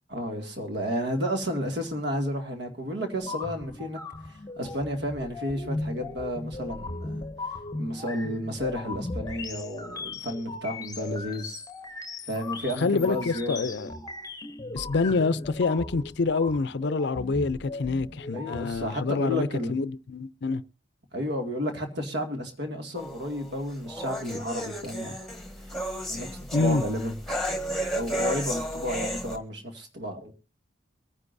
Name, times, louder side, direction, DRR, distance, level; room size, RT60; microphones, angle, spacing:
voice 1, 0.1-4.0 4.2-7.2 7.8-11.6 12.3-13.7 18.3-19.8 21.1-25.2 26.1-27.2 27.9-30.3, equal, 60° right, 2.2 m, -32 dB
sound 1, 3.2-19.0, left 2 dB, 20° left, 0.9 m, -38 dB
voice 2, 12.8-13.9 14.7-20.6 26.5-26.8, left 4 dB, 65° left, 0.5 m, -26 dB
sound 2, 23.0-29.4, equal, ahead, 1.5 m, -33 dB
24.0 x 9.8 x 2.6 m
head